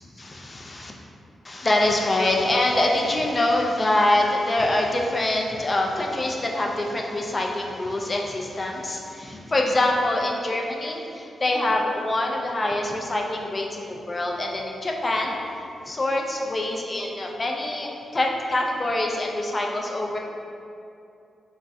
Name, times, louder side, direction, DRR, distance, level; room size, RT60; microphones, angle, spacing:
voice 1, 0.2-0.9 1.4-15.4 15.9-20.2, left 1 dB, 30° left, 0 dB, 0.3 m, -25 dB
3.4 x 2.0 x 2.6 m, 2.6 s
cardioid pair, 100°, 0 cm